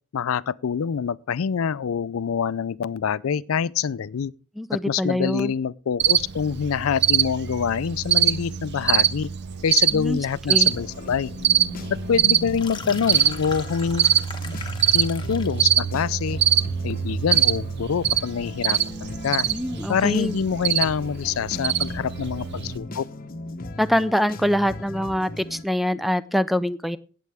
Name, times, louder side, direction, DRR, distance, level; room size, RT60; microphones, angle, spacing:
voice 1, 0.1-4.3 4.7-9.3 9.6-11.3 12.1-14.2 14.9-16.4 16.8-19.5 19.9-23.1, left 7 dB, 80° left, 0.4 m, -26 dB
voice 2, 4.6-5.5 9.9-10.2 10.5-10.7 19.5-20.4 23.8-27.0, equal, ahead, 0.4 m, -24 dB
Cricket, 6.0-22.8, right 9 dB, 55° right, 0.6 m, -24 dB
sound 1, 10.6-25.6, left 1 dB, 45° left, 0.9 m, -38 dB
sound 2, 12.4-15.6, left 5 dB, 20° left, 1.2 m, -39 dB
17.5 x 7.7 x 3.5 m
head